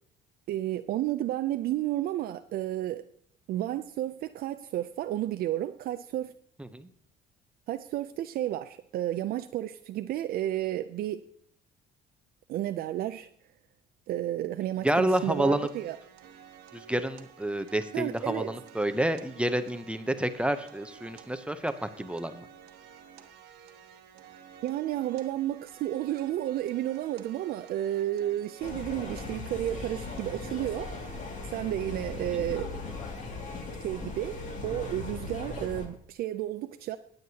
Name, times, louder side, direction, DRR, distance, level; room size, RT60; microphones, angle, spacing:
voice 1, 0.5-3.0 3.5-6.3 7.7-11.2 12.5-13.3 14.1-16.0 17.9-18.5 24.6-31.0 31.5-32.8 33.8-37.0, right 13 dB, 65° right, 10 dB, 0.4 m, -32 dB
voice 2, 6.6-6.9 14.8-15.7 16.7-22.5, right 1 dB, 5° right, 10 dB, 0.6 m, -29 dB
sound 1, 15.2-31.2, right 8 dB, 85° right, 1.2 m, -52 dB
sound 2, 28.6-35.9, left 3 dB, 45° left, 2.1 m, -38 dB
20.0 x 7.9 x 2.8 m, 0.65 s
cardioid pair, 110°, 17 cm